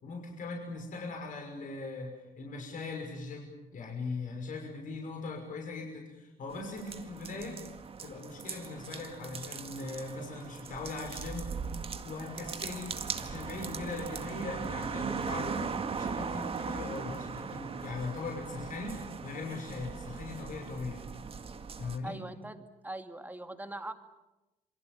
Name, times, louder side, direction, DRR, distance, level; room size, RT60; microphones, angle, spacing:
voice 1, 0.0-7.6 8.0-11.7 12.0-21.0 21.8-22.2, left 3 dB, 50° left, 2 dB, 6.0 m, -40 dB
sound 1, 6.5-22.0, right 5 dB, 35° right, 2.0 m, -39 dB
voice 2, 22.0-23.9, right 2 dB, 10° right, 7 dB, 2.3 m, -41 dB
28.0 x 24.5 x 7.7 m, 1.0 s
cardioid pair, 110°, 17 cm